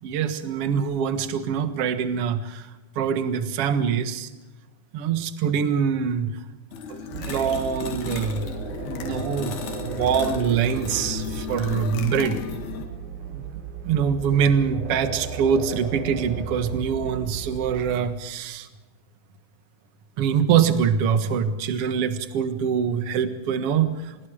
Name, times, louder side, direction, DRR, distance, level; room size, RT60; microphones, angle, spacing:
voice 1, 0.0-2.7 3.0-4.3 4.9-6.4 6.9-8.5 9.0-12.4 13.3-13.4 13.8-18.7 20.2-24.3, right 7 dB, 50° right, 9 dB, 1.9 m, -24 dB
sound 1, 6.7-12.9, left 6 dB, 90° left, 4.0 m, -34 dB
sound 2, 7.1-18.0, right 7 dB, 85° right, 4.6 m, -36 dB
27.5 x 20.5 x 5.0 m, 1.1 s
omnidirectional pair, 4.3 m